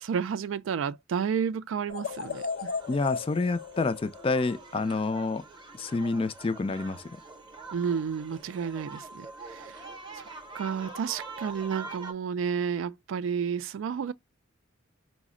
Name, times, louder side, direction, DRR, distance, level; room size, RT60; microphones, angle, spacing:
voice 1, 0.0-2.7 7.7-9.8 10.1-10.3 10.5-14.1, right 6 dB, 70° right, 0.3 m, -31 dB
sound 1, 1.9-5.1, left 5 dB, 80° left, 0.6 m, -36 dB
sound 2, 2.0-12.1, right 3 dB, 25° right, 0.7 m, -45 dB
voice 2, 2.9-5.4 5.8-7.0, left 3 dB, 25° left, 0.4 m, -28 dB
4.9 x 2.1 x 3.6 m
head